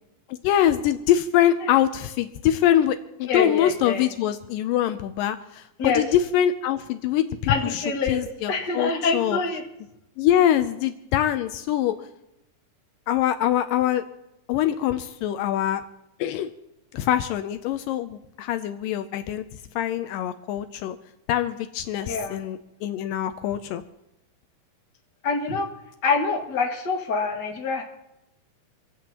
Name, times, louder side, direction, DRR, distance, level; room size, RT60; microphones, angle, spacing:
voice 1, 0.3-9.4 10.2-12.1 13.1-14.0 14.5-15.8 16.2-16.5 16.9-19.5 19.8-21.0 21.3-23.8, left 11 dB, 80° left, 9 dB, 2.3 m, -24 dB
voice 2, 3.3-4.1 5.8-6.0 7.5-9.6 22.0-22.4 25.2-25.7 26.0-27.8, left 4 dB, 35° left, 1 dB, 2.1 m, -25 dB
25.5 x 16.5 x 3.0 m, 0.84 s
omnidirectional pair, 4.0 m